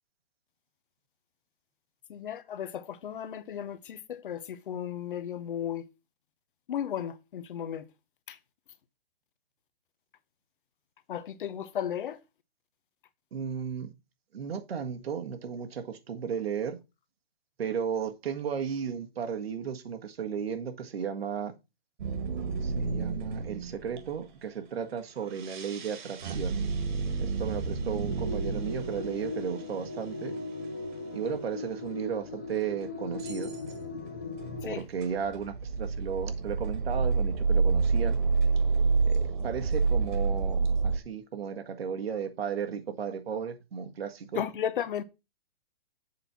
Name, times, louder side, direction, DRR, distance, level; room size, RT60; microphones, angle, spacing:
voice 1, 2.1-5.8 6.7-7.8 8.3-8.4 11.1-12.2 34.7-34.8 44.3-45.0, left 9 dB, 60° left, 1.0 m, -34 dB
voice 2, 13.3-13.9 14.3-16.8 17.6-21.5 22.6-26.6 27.2-30.4 31.1-33.5 34.6-38.2 39.0-44.4, right 7 dB, 80° right, 1.7 m, -34 dB
sound 1, 22.0-24.2 25.2-29.6 31.3-31.4 32.0-32.1 33.2-33.7 34.4-41.0, right 4 dB, 50° right, 1.8 m, -29 dB
sound 2, 28.1-34.8, left 3 dB, 15° left, 0.3 m, -38 dB
7.6 x 4.2 x 6.1 m
hypercardioid pair, 165°, 30 cm